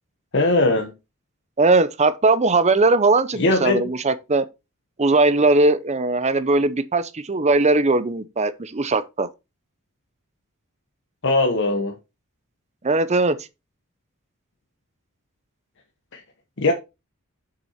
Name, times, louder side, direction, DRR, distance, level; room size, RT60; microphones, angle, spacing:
voice 1, 0.3-0.9 3.4-3.8 11.2-11.9 16.1-16.2 16.6-16.7, left 2 dB, 60° left, 1.2 m, -19 dB
voice 2, 1.6-4.4 5.0-9.3 12.8-13.4, right 2 dB, 30° right, 0.7 m, -19 dB
6.8 x 6.1 x 4.3 m
head